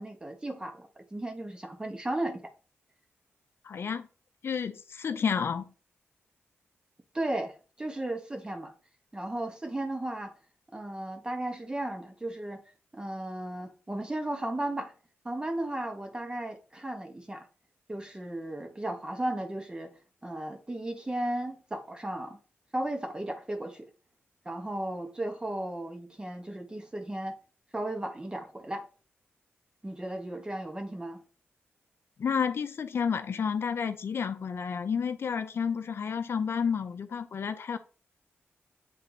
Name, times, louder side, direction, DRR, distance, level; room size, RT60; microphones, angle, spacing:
voice 1, 0.0-2.4 7.1-8.7 9.1-10.3 10.7-12.6 12.9-14.9 15.2-17.5 17.9-19.9 20.2-22.4 22.7-23.9 24.4-27.4 27.7-28.9 29.8-31.2, right 1 dB, 20° right, 1.2 m, -35 dB
voice 2, 3.6-4.1 4.4-5.7 32.2-37.8, left 6 dB, 60° left, 0.5 m, -30 dB
7.7 x 3.3 x 3.9 m
cardioid pair, 85°, 5 cm